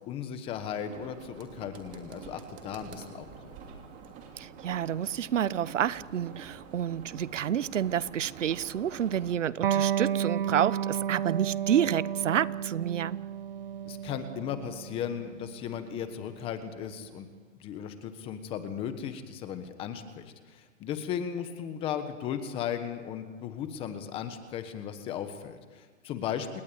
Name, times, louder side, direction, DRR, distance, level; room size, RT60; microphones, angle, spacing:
voice 1, 0.0-3.6 13.8-17.3 17.6-26.6, left 8 dB, 15° left, 10 dB, 1.3 m, -36 dB
sound 1, 0.5-9.4, right 5 dB, 20° right, 2.9 m, -47 dB
voice 2, 4.4-13.2, right 9 dB, 70° right, 19 dB, 1.1 m, -29 dB
Electric guitar, 9.6-16.8, right 9 dB, 45° right, 0.8 m, -32 dB
28.5 x 19.0 x 8.7 m, 1.4 s
hypercardioid pair, 160°, 39 cm